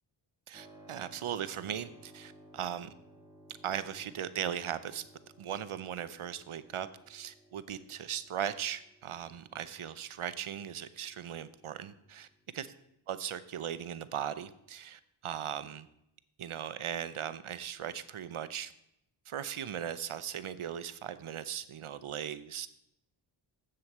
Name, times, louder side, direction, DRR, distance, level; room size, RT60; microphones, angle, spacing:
Keyboard (musical), 0.5-12.9, right 1 dB, 10° right, 3.3 m, -59 dB
voice 1, 0.5-2.9 3.6-5.0 5.4-12.3 12.5-12.7 13.1-15.9 16.4-18.7 19.3-22.7, right 9 dB, 85° right, 14 dB, 0.8 m, -38 dB
8.3 x 7.7 x 7.2 m, 0.78 s
wide cardioid pair, 60°, 48 cm